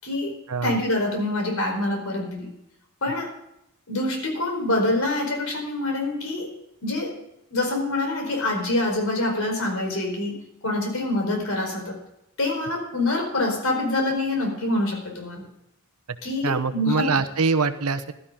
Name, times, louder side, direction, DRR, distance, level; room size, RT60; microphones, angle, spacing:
voice 1, 0.0-0.3 0.6-2.5 3.0-3.3 3.9-6.5 6.8-7.2 7.5-12.0 12.4-15.5 16.2-17.1, left 2 dB, 70° left, 3 dB, 4.6 m, -26 dB
voice 2, 16.4-18.1, right 4 dB, 85° right, 11 dB, 1.0 m, -24 dB
15.5 x 12.5 x 3.8 m, 0.81 s
head